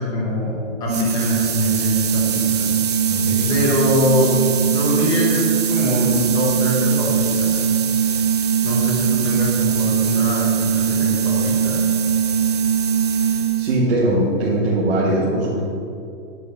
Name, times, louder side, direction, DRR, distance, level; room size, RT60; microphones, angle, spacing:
voice 1, 0.0-2.6 3.5-4.3 4.6-7.7 8.0-8.1 8.6-11.8, left 1 dB, 10° left, -5 dB, 1.1 m, -23 dB
sound 1, 0.9-13.8, right 7 dB, 30° right, 0.6 m, -20 dB
voice 2, 3.1-3.5 13.6-15.6, right 1 dB, 50° right, -7 dB, 1.9 m, -20 dB
9.9 x 5.3 x 6.5 m, 2.6 s
hypercardioid pair, 180°, 40 cm